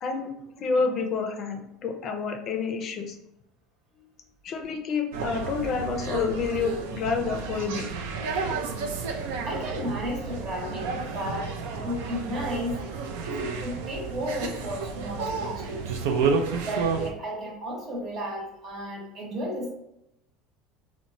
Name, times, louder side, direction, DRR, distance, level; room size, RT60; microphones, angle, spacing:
voice 1, 0.0-3.2 4.4-7.9, left 5 dB, 50° left, 5 dB, 0.4 m, -29 dB
sound 1, 5.1-17.1, right 5 dB, 80° right, 0.3 m, -31 dB
voice 2, 9.4-12.8 13.2-15.9 16.6-19.7, equal, 50° right, -1 dB, 0.9 m, -33 dB
2.8 x 2.1 x 2.5 m, 0.83 s
hypercardioid pair, 85°, 0 cm